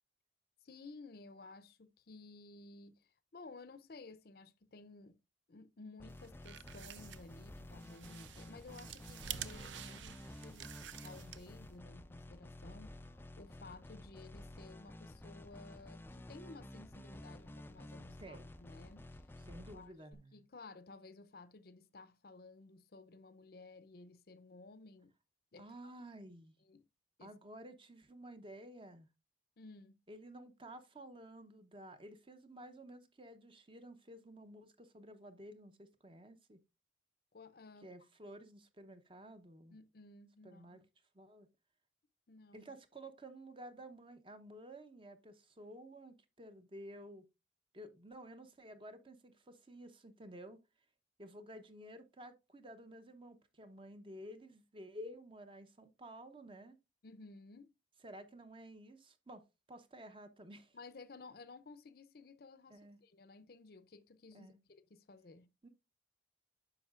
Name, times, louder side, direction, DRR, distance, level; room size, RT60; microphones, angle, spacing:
voice 1, 0.6-5.2 5.5-10.7 11.0-19.2 19.5-25.1 25.5-25.7 26.6-26.9 27.2-27.3 29.6-30.0 37.3-38.1 39.7-40.8 42.3-42.7 57.0-57.7 60.7-65.5, left 3 dB, 55° left, 0.6 m, -55 dB
sound 1, 6.0-20.1, left 1 dB, 10° left, 0.4 m, -52 dB
sound 2, 6.2-11.7, right 10 dB, 80° right, 0.5 m, -49 dB
voice 2, 19.5-20.4 25.6-26.6 27.2-29.1 30.1-36.6 37.8-39.8 40.4-40.8 41.1-41.5 42.5-47.2 47.7-50.6 51.2-56.8 58.0-60.8 62.7-63.0 64.3-64.6 65.6-65.7, right 1 dB, 30° right, 0.8 m, -53 dB
9.8 x 6.4 x 2.4 m
head